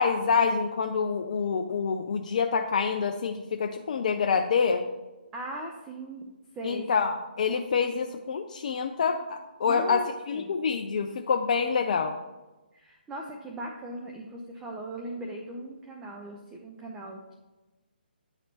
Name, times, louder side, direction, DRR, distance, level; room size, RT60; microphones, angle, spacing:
voice 1, 0.0-4.8 6.6-12.2, left 5 dB, 45° left, 5 dB, 0.4 m, -27 dB
voice 2, 5.3-6.2 6.5-6.9 9.6-10.5 12.7-17.3, right 1 dB, 10° right, 1 dB, 0.5 m, -39 dB
9.7 x 4.1 x 2.9 m, 1.1 s
figure-of-eight pair, 140°, 6 cm